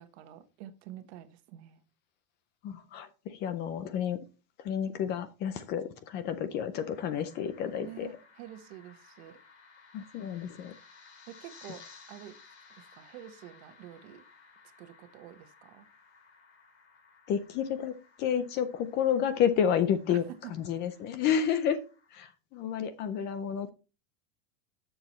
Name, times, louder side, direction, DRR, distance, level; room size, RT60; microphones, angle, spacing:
voice 1, 0.0-1.8 7.8-9.4 11.3-12.4 12.8-14.2 14.8-15.9 20.1-20.5, right 12 dB, 55° right, 1.2 m, -48 dB
voice 2, 2.6-4.2 4.6-8.1 9.9-10.7 17.3-17.9 18.2-20.2 20.5-21.8 22.1-23.7, left 8 dB, 30° left, 0.5 m, -30 dB
sound 1, 6.7-22.1, left 5 dB, 55° left, 3.2 m, -58 dB
11.5 x 7.0 x 3.0 m
supercardioid pair, 175°, 38 cm